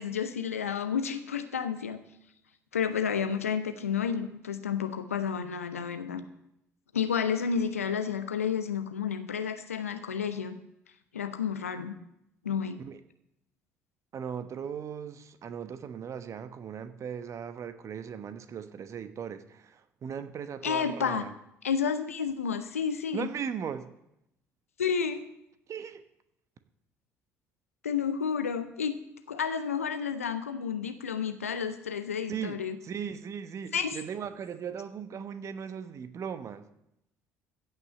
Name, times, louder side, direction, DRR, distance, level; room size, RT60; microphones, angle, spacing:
voice 1, 0.0-2.0 2.7-6.2 6.9-10.6 11.1-12.0 12.4-12.8 20.6-21.3 21.6-23.3 24.8-25.2 27.8-29.0 29.3-32.7 33.7-34.0, left 7 dB, 80° left, 9 dB, 0.9 m, -31 dB
voice 2, 14.1-21.3 23.1-23.9 25.7-26.0 32.3-32.6 32.8-36.7, right 7 dB, 40° right, 11 dB, 1.1 m, -38 dB
15.0 x 5.9 x 7.8 m, 0.81 s
figure-of-eight pair, 55°, 7 cm